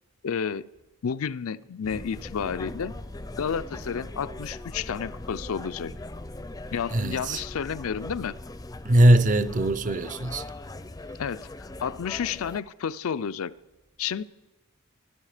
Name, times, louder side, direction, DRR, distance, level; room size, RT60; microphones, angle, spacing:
voice 1, 0.2-0.7 1.0-2.9 3.4-5.9 6.7-8.3 11.2-13.5 14.0-14.2, left 7 dB, 70° left, 0.4 m, -31 dB
sound 1, 1.8-12.6, left 2 dB, 15° left, 0.5 m, -40 dB
voice 2, 6.9-7.4 8.8-10.5, right 1 dB, 35° right, 0.6 m, -20 dB
23.5 x 12.5 x 5.0 m
head